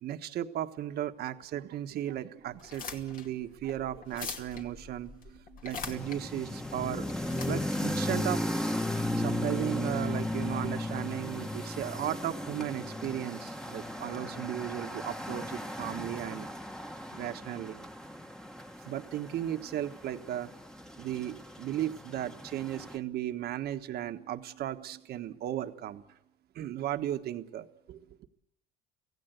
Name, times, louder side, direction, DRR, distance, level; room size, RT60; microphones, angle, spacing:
voice 1, 0.0-8.4 9.1-16.5 17.1-17.8 18.8-20.5 21.0-26.0 26.5-28.0, right 12 dB, 70° right, 8 dB, 1.4 m, -36 dB
sound 1, 2.5-9.0, left 5 dB, 55° left, 2.5 m, -44 dB
sound 2, 5.8-23.0, left 1 dB, 5° left, 1.4 m, -36 dB
24.5 x 16.5 x 8.1 m, 0.85 s
cardioid pair, 110°, 17 cm